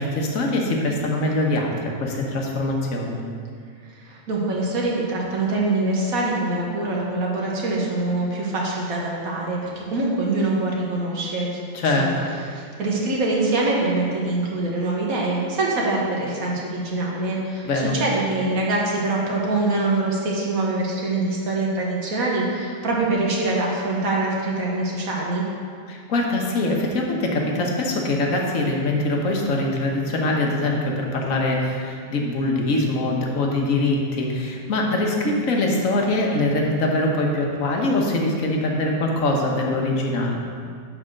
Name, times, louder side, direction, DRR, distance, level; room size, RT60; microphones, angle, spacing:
voice 1, 0.0-3.2 11.7-12.3 17.6-17.9 25.9-40.4, left 2 dB, 70° left, 0 dB, 1.4 m, -23 dB
voice 2, 3.8-11.6 12.0-12.1 12.5-25.4, right 2 dB, 85° right, -3 dB, 1.7 m, -24 dB
6.1 x 4.9 x 6.4 m, 2.1 s
omnidirectional pair, 1.4 m